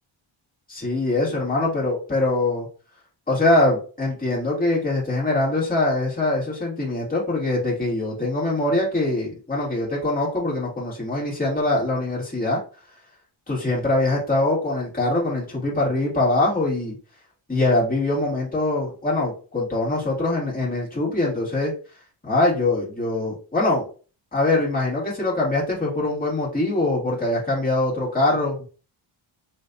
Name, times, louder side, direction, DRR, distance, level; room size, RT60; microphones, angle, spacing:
voice 1, 0.7-2.7 3.3-12.6 13.5-17.0 17.5-21.7 22.2-23.9 24.3-28.7, left 2 dB, 15° left, -6 dB, 2.5 m, -23 dB
5.6 x 3.3 x 2.8 m, 0.37 s
wide cardioid pair, 150°, 49 cm